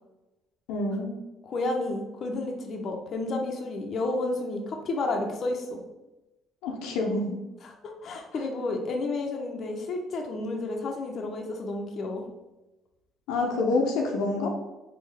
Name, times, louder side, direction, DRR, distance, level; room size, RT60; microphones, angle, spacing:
voice 1, 0.7-1.2 6.6-7.2 13.3-14.5, left 3 dB, 85° left, 0 dB, 0.7 m, -27 dB
voice 2, 1.4-5.8 7.6-12.2, left 2 dB, 50° left, 2 dB, 0.7 m, -31 dB
3.6 x 3.4 x 3.3 m, 1.0 s
supercardioid pair, 85°, 0 cm